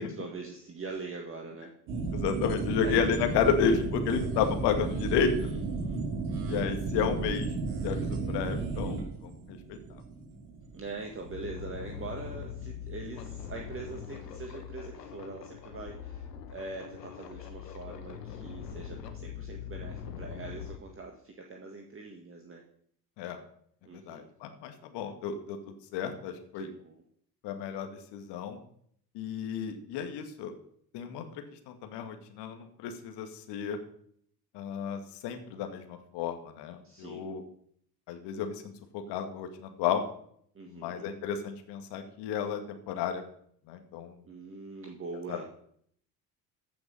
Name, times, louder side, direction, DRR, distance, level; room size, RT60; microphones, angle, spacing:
voice 1, 0.2-1.7 2.8-3.0 5.4-6.0 10.7-22.6 23.8-24.3 26.5-27.0 36.8-37.4 40.5-41.1 44.2-45.4, right 3 dB, 25° right, 2 dB, 1.8 m, -43 dB
sound 1, 1.9-12.8 13.0-13.1, right 4 dB, 55° right, 2.6 m, -34 dB
voice 2, 2.1-5.5 6.4-7.5 7.8-9.8 23.2-23.4 23.9-26.7 27.4-28.6 29.1-30.5 30.9-33.8 34.5-37.4 38.1-40.0 40.7-43.2 43.7-44.2 45.3-45.4, left 7 dB, 55° left, 6 dB, 2.0 m, -32 dB
sound 2, 10.4-10.5 10.9-20.8, left 8 dB, 80° left, 1.3 m, -42 dB
15.0 x 6.0 x 5.6 m, 0.65 s
figure-of-eight pair, 55°, 48 cm